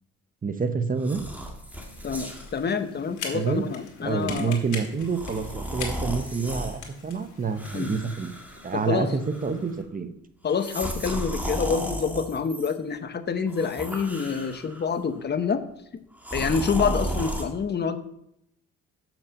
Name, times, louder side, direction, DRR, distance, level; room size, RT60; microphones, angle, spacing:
voice 1, 0.4-1.2 3.3-3.7 4.0-8.3 8.6-10.1, right 5 dB, 30° right, 10 dB, 0.8 m, -28 dB
sound 1, 1.0-2.6 3.2-3.4 5.1-6.8 7.5-9.0 9.3-9.7 10.5-12.7 13.5-14.8 16.2-17.4, right 1 dB, 5° right, 1.8 m, -34 dB
sound 2, 1.7-9.8, left 5 dB, 75° left, 1.9 m, -42 dB
voice 2, 2.0-4.6 7.7-7.9 8.7-9.1 10.4-15.6 15.9-16.0 16.3-18.0, left 6 dB, 35° left, 10 dB, 0.9 m, -27 dB
6.7 x 6.0 x 6.9 m, 0.76 s
cardioid pair, 90°, 30 cm